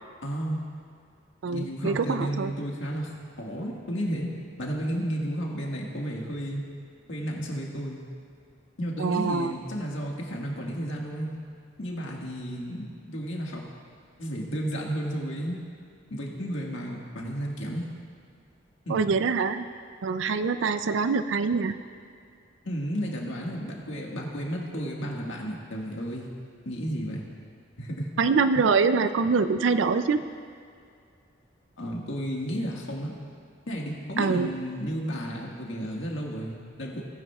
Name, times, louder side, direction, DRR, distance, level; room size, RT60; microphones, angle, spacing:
voice 1, 0.2-0.6 1.4-4.3 4.6-6.6 7.1-8.0 8.8-11.3 11.8-13.6 14.2-15.6 16.1-17.9 18.8-19.1 22.6-26.3 26.6-27.2 27.8-28.1 31.8-33.2 33.7-37.0, equal, 80° left, -2 dB, 1.7 m, -32 dB
voice 2, 1.4-2.5 9.0-9.5 18.9-19.6 20.0-21.8 28.2-30.2 34.2-34.5, right 4 dB, 75° right, 11 dB, 0.4 m, -24 dB
18.0 x 9.9 x 2.4 m, 2.3 s
head